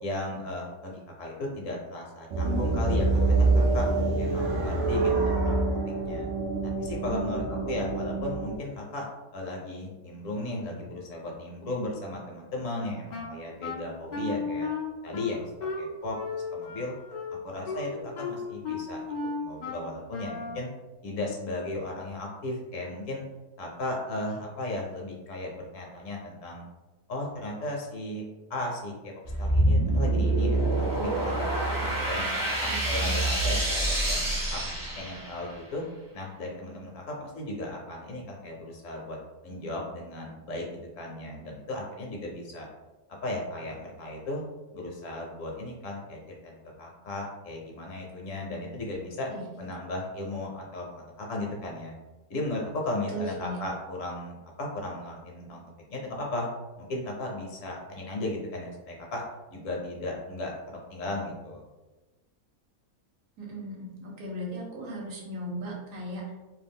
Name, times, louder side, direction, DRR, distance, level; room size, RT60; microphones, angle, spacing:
voice 1, 0.0-3.9 4.2-5.6 6.0-6.3 6.8-9.1 9.3-14.7 15.0-16.2 16.5-16.9 17.4-19.0 19.4-20.7 21.0-23.2 23.6-26.6 27.1-29.1 29.4-31.5 31.8-34.6 35.0-35.8 36.1-39.2 39.4-40.7 41.0-42.7 43.1-44.4 44.7-49.3 49.6-51.9 52.3-55.6 55.9-56.5 56.8-59.2 59.5-61.6, left 2 dB, 65° left, -1 dB, 0.9 m, -36 dB
sound 1, 2.3-8.6, right 3 dB, 85° right, 0.4 m, -26 dB
voice 2, 7.1-7.5 32.6-33.2 48.3-48.5 49.3-49.4 53.1-53.6 63.4-66.3, right 1 dB, 65° right, -2 dB, 1.1 m, -37 dB
Wind instrument woodwind instrument, 13.1-20.7, left 4 dB, 90° left, 0.4 m, -35 dB
sound 2, 29.2-35.5, right 1 dB, 25° right, 0.4 m, -26 dB
2.6 x 2.3 x 3.4 m, 1.1 s
omnidirectional pair, 1.6 m